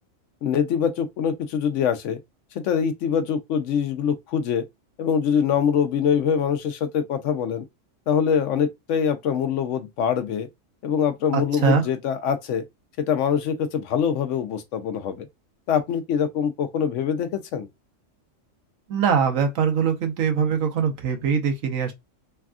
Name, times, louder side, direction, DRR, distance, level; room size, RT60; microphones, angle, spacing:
voice 1, 0.4-2.2 2.5-4.6 5.0-7.6 8.1-10.5 10.8-12.6 13.0-15.3 15.7-17.7, left 7 dB, 70° left, 0.9 m, -24 dB
voice 2, 11.3-11.8 18.9-21.9, right 6 dB, 80° right, 1.2 m, -22 dB
3.4 x 2.2 x 2.4 m
omnidirectional pair, 1.4 m